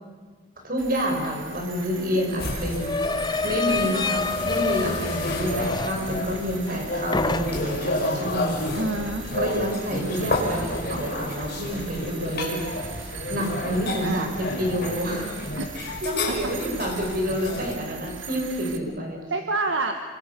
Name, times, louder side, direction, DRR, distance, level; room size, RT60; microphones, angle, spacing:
voice 1, 0.6-2.9 3.4-8.8 9.3-12.6 13.3-15.3 15.8-19.2, equal, 45° right, 2 dB, 6.2 m, -28 dB
sound 1, 0.8-18.8, right 6 dB, 85° right, 2.4 m, -41 dB
sound 2, 1.2-1.3 1.6-6.8 7.1-7.9, left 3 dB, 20° left, 0.7 m, -29 dB
sound 3, 2.4-17.7, left 1 dB, 55° left, 5.1 m, -31 dB
voice 2, 4.4-4.7 8.7-9.5 10.0-10.3 14.0-14.3 15.6-15.7 16.3-16.4 19.3-19.9, right 2 dB, 70° right, 5 dB, 1.5 m, -28 dB
27.5 x 23.5 x 6.9 m, 1.4 s
head